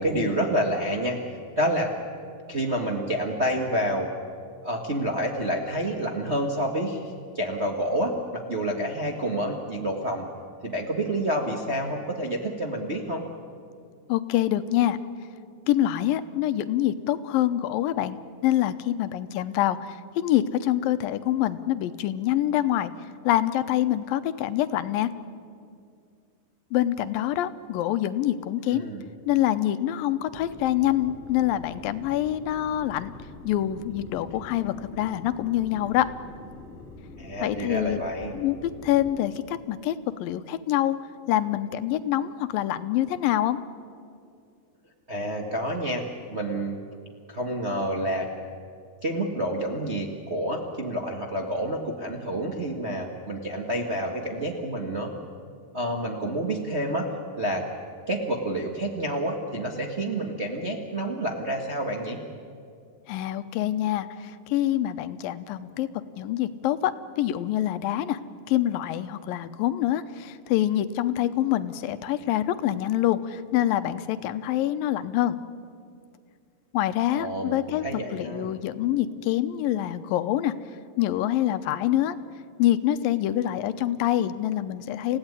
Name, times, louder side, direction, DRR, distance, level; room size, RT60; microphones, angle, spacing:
voice 1, 0.0-1.9 2.5-4.1 4.6-10.3 10.6-13.2 28.6-29.1 37.2-38.3 45.1-46.0 46.3-46.8 47.3-48.3 49.0-55.1 55.7-57.6 58.1-62.2 77.1-78.5, right 1 dB, 35° right, 1 dB, 1.0 m, -28 dB
voice 2, 14.1-15.0 15.7-18.2 18.4-22.9 23.2-25.1 26.7-28.9 29.3-33.1 33.4-36.1 37.4-38.0 38.3-38.6 38.8-41.0 41.3-43.6 63.1-65.9 66.2-68.2 68.5-75.4 76.7-80.5 81.0-82.2 82.6-85.2, left 13 dB, 80° left, 12 dB, 2.5 m, -25 dB
sound 1, 30.3-39.2, left 3 dB, 20° left, 2.5 m, -45 dB
28.5 x 16.5 x 9.8 m, 2.3 s
omnidirectional pair, 4.0 m